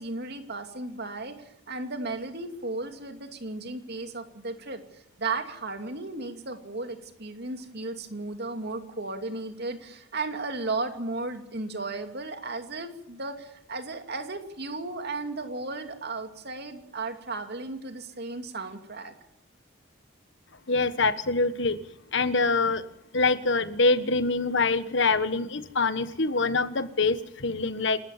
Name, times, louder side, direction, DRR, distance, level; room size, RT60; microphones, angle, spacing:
voice 1, 0.0-4.8 5.2-19.1, right 3 dB, 55° right, 6 dB, 2.7 m, -35 dB
voice 2, 20.7-21.8 22.1-22.8 23.1-28.0, left 3 dB, 60° left, 13 dB, 1.4 m, -25 dB
28.0 x 14.0 x 7.3 m, 0.81 s
head